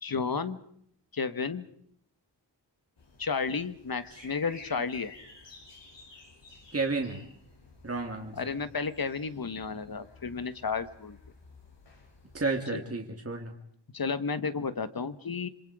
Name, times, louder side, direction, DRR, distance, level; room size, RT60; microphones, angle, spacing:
voice 1, 0.0-0.6 1.1-1.7 3.2-5.1 8.3-11.2 12.7-12.8 13.9-15.5, left 5 dB, 55° left, 12 dB, 1.5 m, -32 dB
sound 1, 3.0-12.6, left 3 dB, 90° left, 6.8 m, -53 dB
voice 2, 6.7-7.2 7.8-8.5 12.3-13.5, right 3 dB, 35° right, 2 dB, 2.7 m, -32 dB
27.0 x 26.5 x 5.0 m, 0.65 s
wide cardioid pair, 110°, 42 cm